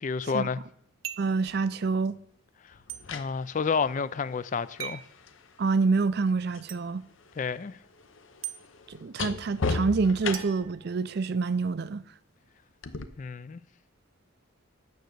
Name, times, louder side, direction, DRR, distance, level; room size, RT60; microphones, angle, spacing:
voice 1, 0.0-0.6 3.1-5.0 7.4-7.8 13.2-13.6, left 5 dB, 35° left, 0.3 m, -30 dB
sound 1, 1.0-1.4 2.9-3.0 4.8-5.1 6.7-6.8 8.4-8.6 10.3-11.4, right 11 dB, 75° right, 0.8 m, -39 dB
voice 2, 1.2-2.2 5.6-7.0 8.9-12.0, right 4 dB, 50° right, 0.4 m, -27 dB
sound 2, 1.5-1.6 2.7-6.7 7.0-10.8 12.8-13.0, left 4 dB, 65° left, 0.8 m, -37 dB
9.2 x 6.3 x 8.0 m
head